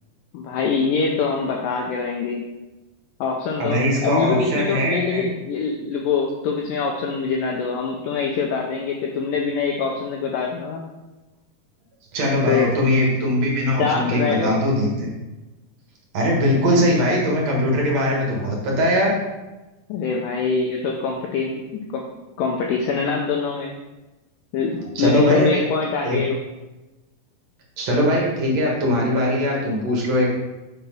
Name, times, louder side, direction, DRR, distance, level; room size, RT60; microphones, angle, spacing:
voice 1, 0.3-2.4 3.2-10.9 12.5-12.7 13.8-14.6 19.9-22.1 22.4-23.7 24.5-26.4, left 5 dB, 85° left, 0 dB, 1.9 m, -24 dB
voice 2, 3.6-5.2 12.1-15.1 16.1-19.2 25.0-25.6 26.0-26.2 27.8-30.3, equal, 60° right, -2 dB, 1.8 m, -20 dB
5.8 x 4.1 x 5.3 m, 1.1 s
omnidirectional pair, 4.6 m